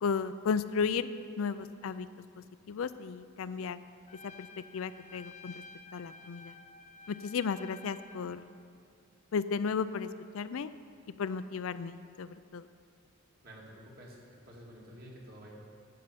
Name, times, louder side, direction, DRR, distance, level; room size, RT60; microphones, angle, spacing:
voice 1, 0.0-1.1 1.4-2.1 2.4-3.8 4.2-5.6 5.9-6.6 7.1-8.4 9.3-10.7 11.2-12.7, left 5 dB, 80° left, 13 dB, 0.4 m, -34 dB
Trumpet, 4.1-8.3, left 3 dB, 35° left, 0.6 m, -52 dB
voice 2, 13.4-15.5, equal, 45° right, -2 dB, 2.1 m, -50 dB
11.5 x 5.5 x 7.9 m, 2.2 s
head